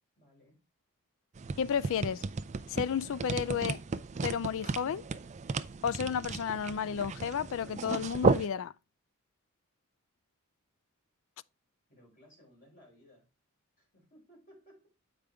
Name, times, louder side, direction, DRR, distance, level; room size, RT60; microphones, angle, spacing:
voice 1, 0.2-0.6 11.9-13.3 13.8-14.9, equal, 40° left, 4.7 m, -60 dB
sound 1, 1.3-8.5, right 4 dB, 30° right, 0.4 m, -34 dB
voice 2, 1.6-2.2 2.7-3.8 4.2-5.0 5.8-8.7, left 7 dB, 60° left, 0.3 m, -32 dB
8.0 x 5.1 x 3.4 m
head